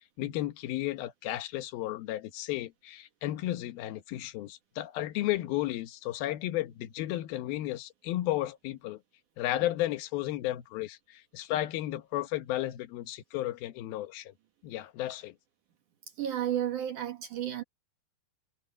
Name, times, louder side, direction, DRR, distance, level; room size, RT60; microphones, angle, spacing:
voice 1, 0.2-9.0 9.4-14.3 14.6-15.3, left 15 dB, 70° left, 2.8 m, -33 dB
voice 2, 16.2-17.6, right 11 dB, 60° right, 2.6 m, -32 dB
omnidirectional pair, 4.7 m